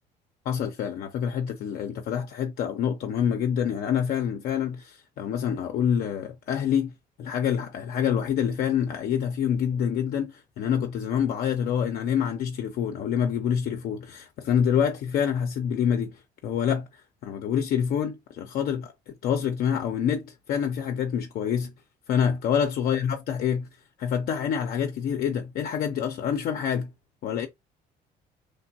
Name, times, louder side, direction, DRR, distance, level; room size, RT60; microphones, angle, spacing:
voice 1, 0.5-6.9 7.2-21.7 22.1-23.7 24.0-26.9 27.2-27.5, left 8 dB, 65° left, 0.5 m, -27 dB
3.2 x 2.2 x 2.7 m
cardioid pair, 110°, 17 cm